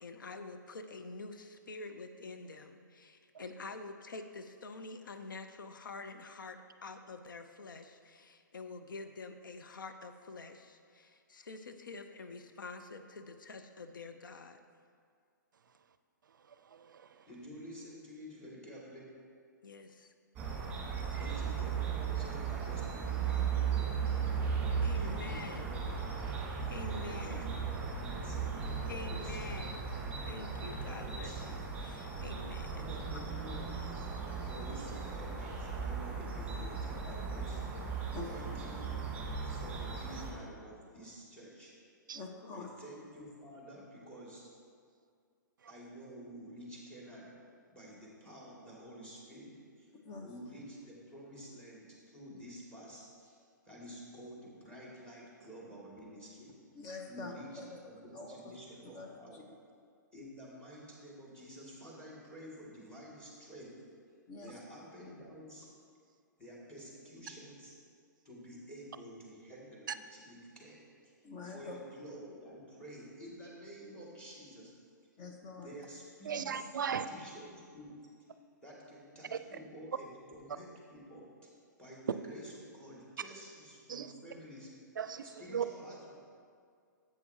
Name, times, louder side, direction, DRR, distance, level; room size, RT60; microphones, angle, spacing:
voice 1, 0.0-14.6 19.6-20.1 21.2-21.7 24.8-25.8 26.7-27.5 28.9-29.8 30.3-32.9, left 3 dB, 80° left, 8 dB, 0.5 m, -47 dB
voice 2, 16.5-17.3 20.9-21.2 42.1-42.2 45.6-45.7 76.3-77.1 79.3-79.4 83.9-84.1 85.0-85.6, right 7 dB, 75° right, 11 dB, 0.4 m, -38 dB
voice 3, 17.3-19.1 21.1-24.4 25.0-26.1 26.9-29.5 30.8-31.5 32.7-33.6 34.4-37.6 38.3-38.9 39.4-41.7 42.5-44.5 45.7-47.3 47.7-49.5 49.8-49.9 50.2-53.4 53.6-56.5 57.1-59.4 60.1-63.7 64.4-65.7 66.4-67.7 68.2-71.1 71.4-74.7 75.6-77.9 78.6-81.5 81.8-84.7 85.4-86.1, equal, 10° left, -4 dB, 2.2 m, -50 dB
sound 1, 20.4-40.3, right 6 dB, 15° right, 1.7 m, -37 dB
voice 4, 42.1-42.7 50.0-50.3 56.7-57.7 58.1-58.4 58.9-59.4 64.3-64.5 71.2-71.8 75.2-75.8, left 4 dB, 30° left, 2 dB, 0.8 m, -45 dB
10.5 x 8.2 x 2.8 m, 2.2 s
hypercardioid pair, 125°, 11 cm